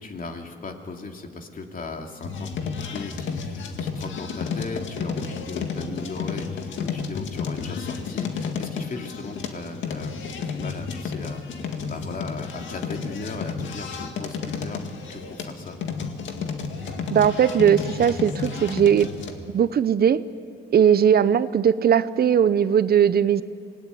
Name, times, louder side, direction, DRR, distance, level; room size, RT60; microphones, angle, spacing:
voice 1, 0.0-15.8, left 3 dB, 45° left, 3 dB, 2.8 m, -37 dB
sound 1, 2.2-19.3, left 5 dB, 70° left, 2.0 m, -32 dB
voice 2, 17.1-19.1 19.5-20.2 20.7-23.4, right 8 dB, 50° right, 15 dB, 0.8 m, -19 dB
26.0 x 18.5 x 9.5 m, 2.4 s
cardioid pair, 90°, 20 cm